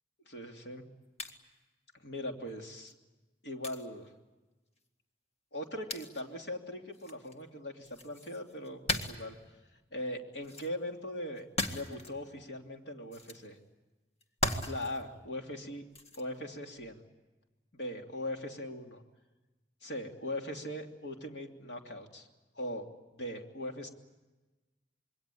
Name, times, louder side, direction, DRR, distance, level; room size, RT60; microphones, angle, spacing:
voice 1, 0.3-0.8 2.0-2.9 3.4-4.1 5.5-9.4 9.9-13.6 14.6-15.8 16.2-17.0 17.7-19.0 19.8-22.3 22.5-23.9, left 1 dB, 70° left, 2 dB, 3.0 m, -40 dB
sound 1, 1.2-1.4 2.9-3.0 3.6-3.9 5.9-6.2 6.9-7.4 7.8-9.4 10.4-10.7 11.4-12.1 13.1-13.4 14.2-15.0 15.9-16.2 16.8-17.0, left 2 dB, 35° left, 2.0 m, -37 dB
27.5 x 22.5 x 8.6 m, 1.2 s
head